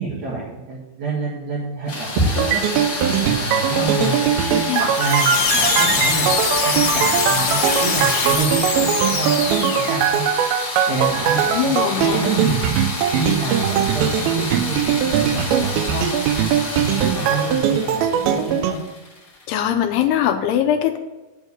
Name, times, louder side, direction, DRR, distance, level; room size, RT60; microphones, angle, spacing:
voice 1, 0.0-2.6 3.0-4.1 4.8-6.4 6.6-10.3 10.9-12.6 13.1-16.1 16.8-18.8, right 4 dB, 50° right, -5 dB, 2.7 m, -27 dB
sound 1, 1.9-19.6, left 2 dB, 25° left, 2.1 m, -29 dB
sound 2, 2.3-18.7, right 9 dB, 85° right, 2.2 m, -21 dB
voice 2, 3.7-4.2 4.5-4.9 11.5-12.3 19.5-21.0, left 10 dB, 80° left, 7 dB, 2.5 m, -22 dB
sound 3, 4.9-10.1, left 4 dB, 55° left, 3.4 m, -23 dB
11.0 x 4.6 x 8.0 m, 1.1 s
omnidirectional pair, 5.1 m